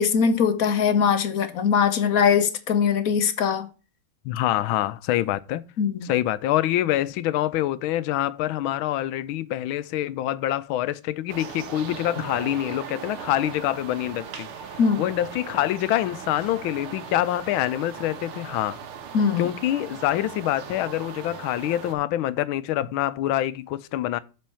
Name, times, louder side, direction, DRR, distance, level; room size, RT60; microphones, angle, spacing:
voice 1, 0.0-3.7 5.8-6.1 14.8-15.1 19.1-19.5, left 6 dB, 55° left, 1.1 m, -21 dB
voice 2, 4.2-5.6 6.0-14.5 15.0-18.8 19.4-24.2, left 13 dB, 75° left, 1.4 m, -26 dB
sound 1, 11.3-21.9, right 7 dB, 90° right, 2.0 m, -39 dB
7.6 x 4.4 x 7.0 m
omnidirectional pair, 2.3 m